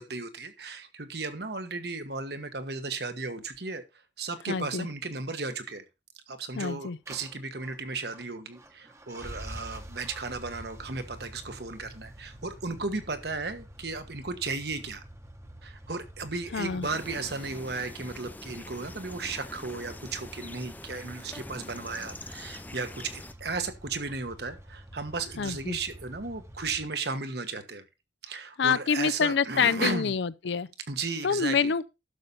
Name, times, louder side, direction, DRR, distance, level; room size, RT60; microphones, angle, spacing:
voice 1, 0.0-3.8 4.2-5.8 6.3-15.0 15.6-27.8 28.2-30.1 30.9-31.7, right 3 dB, 60° right, 1.3 m, -35 dB
voice 2, 4.5-4.9 6.6-7.0 16.5-16.9 25.4-25.8 28.6-30.7 31.2-31.8, left 6 dB, 75° left, 0.5 m, -26 dB
sound 1, 7.1-26.9, right 1 dB, 15° right, 1.0 m, -47 dB
sound 2, 16.8-23.3, left 2 dB, 10° left, 0.5 m, -45 dB
11.5 x 6.8 x 4.1 m
head